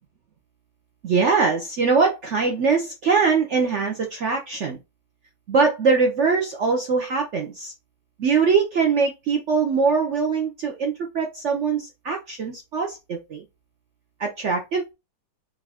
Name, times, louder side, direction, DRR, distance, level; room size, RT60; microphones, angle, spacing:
voice 1, 1.0-4.8 5.5-7.7 8.2-13.4 14.2-14.9, right 5 dB, 75° right, 0.6 m, -22 dB
5.4 x 2.4 x 3.4 m
omnidirectional pair, 2.0 m